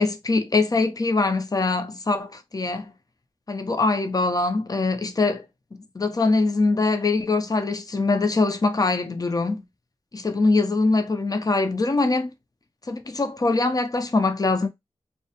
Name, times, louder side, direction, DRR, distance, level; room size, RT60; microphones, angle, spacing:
voice 1, 0.0-2.9 3.5-5.4 5.7-9.6 10.1-12.3 12.9-14.7, left 3 dB, 35° left, 0.5 m, -23 dB
2.3 x 2.1 x 2.8 m
cardioid pair, 45°, 11 cm